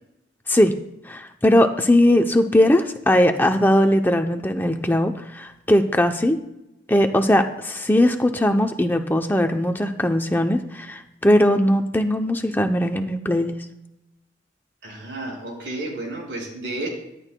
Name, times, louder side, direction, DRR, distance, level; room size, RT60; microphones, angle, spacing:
voice 1, 1.0-6.4 6.9-13.5, left 1 dB, 10° left, 5 dB, 0.6 m, -19 dB
voice 2, 14.8-16.9, right 2 dB, 75° right, 0 dB, 5.1 m, -31 dB
24.0 x 11.0 x 2.2 m, 0.89 s
head